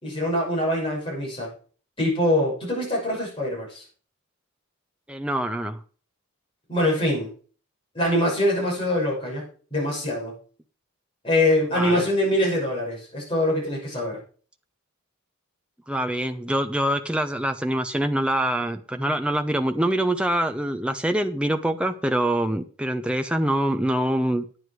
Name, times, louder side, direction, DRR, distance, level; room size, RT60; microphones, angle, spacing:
voice 1, 0.0-1.5 2.0-3.8 6.7-7.3 7.9-10.4 11.2-14.2, left 1 dB, 25° left, -4 dB, 6.4 m, -24 dB
voice 2, 5.1-5.8 11.7-12.0 15.9-24.5, right 1 dB, 5° right, 6 dB, 0.6 m, -25 dB
9.9 x 9.5 x 4.7 m, 0.41 s
head